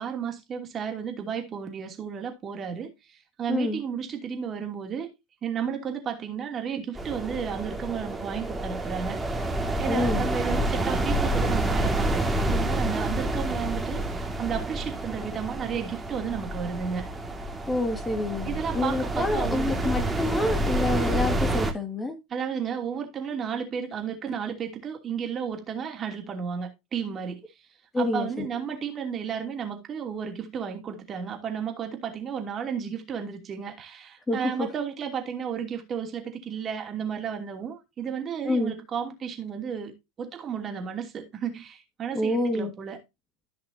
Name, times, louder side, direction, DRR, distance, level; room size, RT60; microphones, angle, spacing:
voice 1, 0.0-5.1 5.4-9.5 9.8-17.1 18.4-19.9 22.3-27.4 28.0-43.0, right 7 dB, 30° right, 2.8 m, -33 dB
voice 2, 3.5-3.8 9.9-10.2 17.7-22.2 27.9-28.5 34.3-34.7 38.4-38.7 42.1-42.7, left 2 dB, 15° left, 1.9 m, -27 dB
sound 1, 6.9-21.7, right 1 dB, 10° right, 2.1 m, -28 dB
14.5 x 5.9 x 2.8 m
hypercardioid pair, 85°, 0 cm